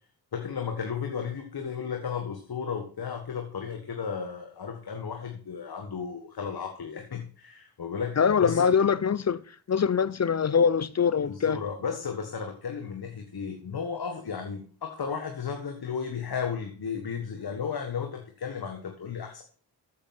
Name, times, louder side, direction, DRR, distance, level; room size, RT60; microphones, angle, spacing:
voice 1, 0.3-8.7 11.2-19.4, left 6 dB, 55° left, 1.6 m, -34 dB
voice 2, 8.2-9.4 9.7-11.6, left 6 dB, 35° left, 0.6 m, -23 dB
8.5 x 7.7 x 6.0 m
cardioid pair, 55°, 44 cm